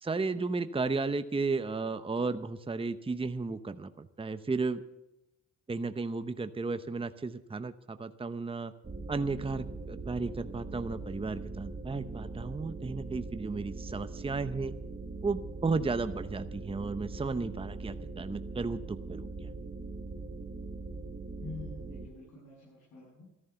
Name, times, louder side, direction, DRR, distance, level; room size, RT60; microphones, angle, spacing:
voice 1, 0.0-4.8 5.7-8.7 9.1-14.7 15.2-19.5, right 4 dB, 20° right, 11 dB, 0.8 m, -34 dB
sound 1, 8.8-22.1, right 3 dB, 35° right, 1.7 m, -41 dB
voice 2, 21.4-23.3, left 3 dB, 80° left, -6 dB, 6.9 m, -46 dB
13.5 x 11.0 x 6.9 m, 0.92 s
cardioid pair, 75°, 30 cm